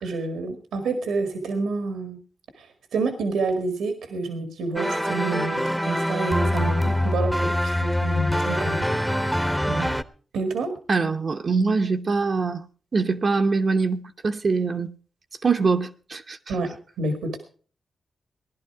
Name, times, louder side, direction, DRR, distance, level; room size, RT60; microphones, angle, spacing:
voice 1, 0.0-2.2 2.6-8.9 10.3-10.8 16.5-17.4, right 3 dB, 90° right, 1.8 m, -28 dB
sound 1, 4.8-10.0, left 1 dB, 5° right, 1.0 m, -24 dB
voice 2, 10.9-12.7 12.9-14.9 15.4-16.4, right 4 dB, 55° right, 0.9 m, -23 dB
17.5 x 11.0 x 4.8 m
cardioid pair, 55°, 0 cm